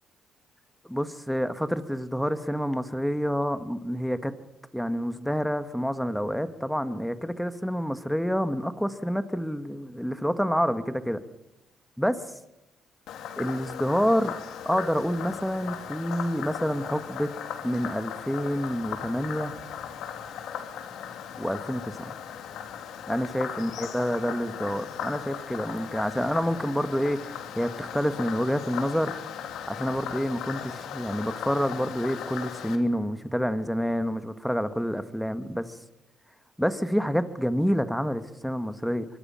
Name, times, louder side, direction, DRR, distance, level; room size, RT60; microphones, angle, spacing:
voice 1, 0.9-4.3 4.7-11.2 12.0-12.2 13.4-14.3 14.6-17.3 17.6-19.5 21.4-22.1 23.1-29.1 29.7-35.7 36.6-39.1, equal, ahead, 11 dB, 1.7 m, -28 dB
Frog, 13.1-32.8, left 8 dB, 85° left, 2.5 m, -37 dB
25.0 x 23.0 x 5.8 m, 0.86 s
cardioid pair, 90°, 0 cm